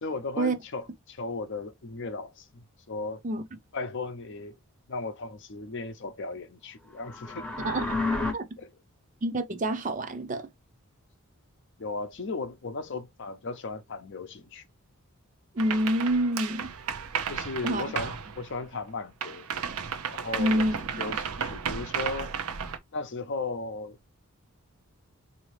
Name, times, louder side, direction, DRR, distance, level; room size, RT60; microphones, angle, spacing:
voice 1, 0.0-3.2 3.7-4.6 4.9-7.5 8.6-8.7 11.8-14.6 17.3-19.5 20.1-20.7 21.0-22.4 22.9-24.0, left 3 dB, 55° left, 0.6 m, -36 dB
sound 1, 6.9-8.3, left 3 dB, 5° left, 0.7 m, -30 dB
voice 2, 7.6-7.9 8.3-8.5 9.2-10.5 15.5-16.7 17.6-17.9 18.3-18.4 20.4-21.2, right 1 dB, 35° right, 0.5 m, -27 dB
sound 2, 15.6-18.9 19.2-22.8, right 7 dB, 80° right, 0.6 m, -33 dB
4.0 x 2.7 x 3.2 m
head